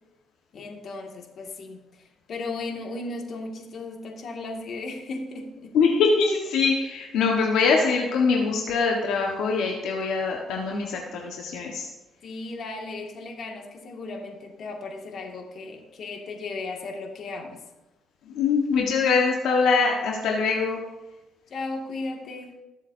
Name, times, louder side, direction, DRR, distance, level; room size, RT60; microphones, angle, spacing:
voice 1, 0.5-5.8 12.2-17.6 21.5-22.5, left 3 dB, 60° left, 1 dB, 2.1 m, -36 dB
voice 2, 5.7-11.9 18.3-20.8, left 4 dB, 90° left, -1 dB, 1.4 m, -23 dB
20.5 x 7.3 x 2.8 m, 1.0 s
cardioid pair, 90°, 0 cm